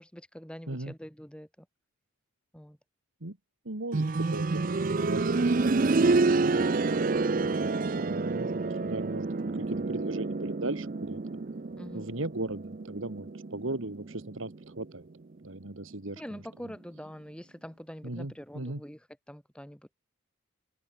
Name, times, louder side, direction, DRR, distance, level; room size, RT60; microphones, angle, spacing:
voice 1, 0.0-1.7 2.5-2.8 11.8-12.3 16.2-19.9, equal, 5° left, 2.5 m, -45 dB
voice 2, 3.7-6.6 7.3-11.2 11.9-14.5 14.8-15.1 15.4-16.2 18.0-18.8, right 2 dB, 70° right, 2.1 m, -38 dB
sound 1, 3.9-14.7 15.0-15.1 16.0-16.1, right 3 dB, 40° right, 0.5 m, -28 dB
head